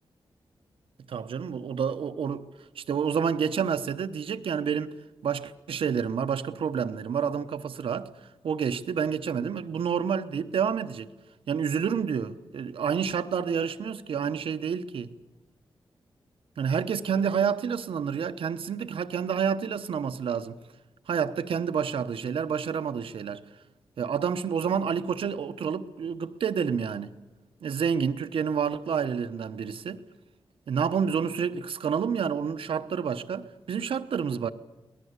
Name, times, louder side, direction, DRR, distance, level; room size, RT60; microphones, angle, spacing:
voice 1, 1.1-2.5 2.8-4.9 5.2-8.1 8.4-11.1 11.5-15.1 16.6-20.6 21.1-23.4 24.0-27.1 27.6-30.0 30.7-34.5, right 7 dB, 85° right, 0.9 m, -29 dB
25.0 x 18.5 x 8.1 m
wide cardioid pair, 140°, 9 cm